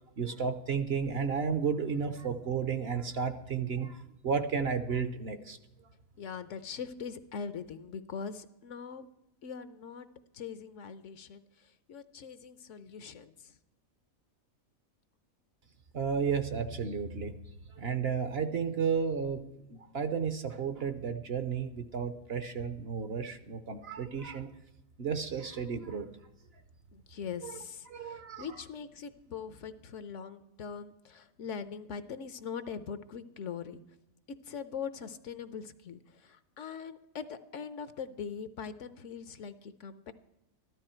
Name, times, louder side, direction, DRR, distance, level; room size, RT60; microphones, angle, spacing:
voice 1, 0.2-5.6 15.9-17.4 17.7-19.4 19.7-24.5 25.0-26.1 27.4-27.6 27.9-28.7, right 6 dB, 55° right, 10 dB, 0.9 m, -33 dB
voice 2, 6.2-9.1 9.4-10.1 10.3-13.5 26.9-33.8 34.4-40.1, left 6 dB, 65° left, 12 dB, 1.0 m, -42 dB
13.5 x 12.5 x 4.4 m, 0.93 s
omnidirectional pair, 1.4 m